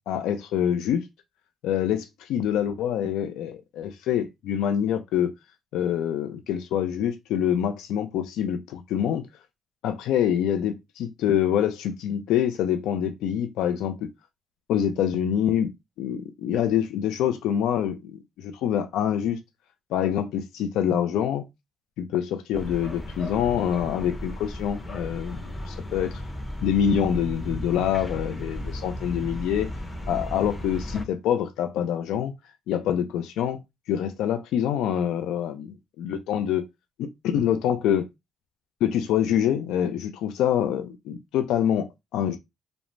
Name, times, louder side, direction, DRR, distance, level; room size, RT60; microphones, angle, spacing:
voice 1, 0.1-1.1 1.6-5.3 5.7-9.3 9.8-14.1 14.7-15.7 16.0-19.4 19.9-21.4 22.0-25.4 25.9-26.2 26.6-29.7 30.1-32.3 32.7-33.6 33.9-36.6 37.0-38.0 38.8-42.4, left 9 dB, 90° left, 0.3 m, -25 dB
sound 1, 22.5-31.1, left 1 dB, 20° left, 0.7 m, -35 dB
2.5 x 2.0 x 3.0 m
cardioid pair, 90°, 0 cm